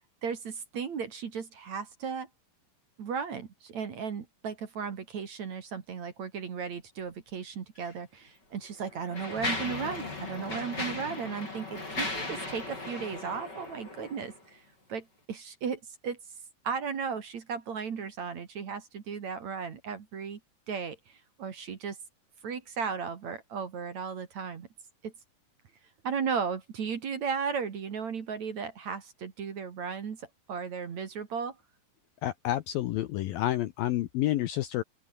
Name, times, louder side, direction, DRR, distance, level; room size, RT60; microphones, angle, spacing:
voice 1, 0.2-2.3 3.0-14.6 14.9-16.2 16.6-20.4 20.7-22.0 22.4-24.7 25.0-25.1 26.0-31.6, right 6 dB, 45° right, 3.0 m, -35 dB
Mechanisms, 7.8-7.9 8.6-14.4, left 2 dB, 20° left, 7.2 m, -37 dB
sound 1, 9.4-14.0, left 7 dB, 55° left, 5.2 m, -46 dB
voice 2, 32.2-34.8, left 14 dB, 75° left, 2.3 m, -29 dB
open air
omnidirectional pair, 5.1 m